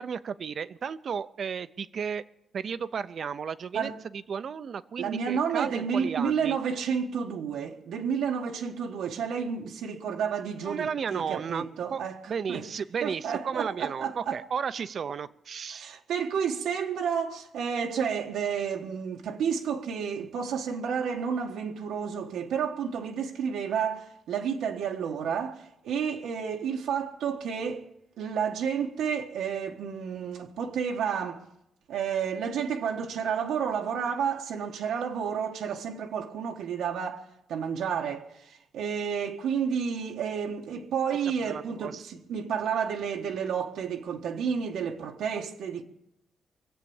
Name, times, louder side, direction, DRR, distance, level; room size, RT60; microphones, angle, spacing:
voice 1, 0.0-2.2 2.5-6.6 10.6-15.9 41.1-42.0, right 6 dB, 50° right, 0.6 m, -34 dB
voice 2, 5.0-12.2 12.5-12.6 13.0-14.4 15.7-27.9 28.2-31.4 31.9-45.8, right 7 dB, 90° right, 1.4 m, -31 dB
23.0 x 8.2 x 7.2 m
cardioid pair, 140°, 0 cm